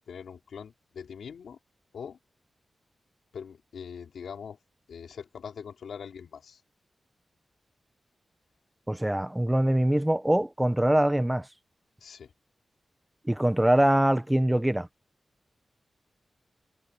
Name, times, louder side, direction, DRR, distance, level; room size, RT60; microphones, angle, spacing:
voice 1, 0.1-1.6 1.9-2.2 3.3-4.6 4.9-6.6 12.0-12.3, left 7 dB, 85° left, 4.0 m, -42 dB
voice 2, 8.9-11.5 13.3-14.9, right 1 dB, 10° right, 1.2 m, -23 dB
cardioid pair, 50°, 0 cm